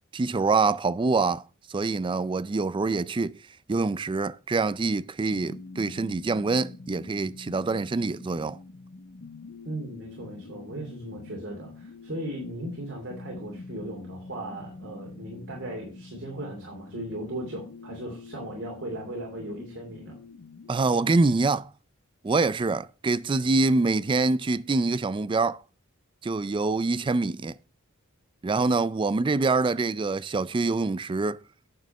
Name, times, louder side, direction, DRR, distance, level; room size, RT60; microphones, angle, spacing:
voice 1, 0.1-1.4 1.7-3.4 3.7-8.6 20.7-21.7 22.2-25.6 26.2-27.6 28.4-31.4, right 3 dB, 25° right, 0.4 m, -25 dB
sound 1, 5.3-20.8, left 3 dB, 60° left, 0.8 m, -45 dB
voice 2, 9.6-20.2, right 1 dB, 60° right, 2.6 m, -37 dB
9.0 x 6.3 x 5.2 m
head